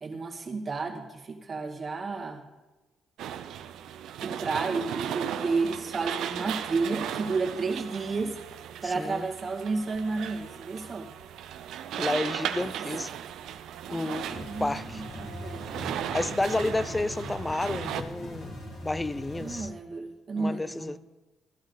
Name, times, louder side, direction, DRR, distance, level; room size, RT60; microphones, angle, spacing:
voice 1, 0.0-2.4 4.2-8.4 8.8-11.1 12.8-12.9 13.8-15.6 19.4-21.0, right 4 dB, 35° right, 2.0 m, -32 dB
sound 1, 3.2-18.0, right 10 dB, 80° right, 0.7 m, -36 dB
voice 2, 9.0-9.3 12.0-13.1 13.9-15.0 16.1-18.6 18.8-19.7 20.4-21.0, left 2 dB, 15° left, 0.4 m, -30 dB
sound 2, 14.2-19.6, left 1 dB, 65° left, 3.7 m, -40 dB
14.5 x 11.5 x 4.0 m
cardioid pair, 90°, 0 cm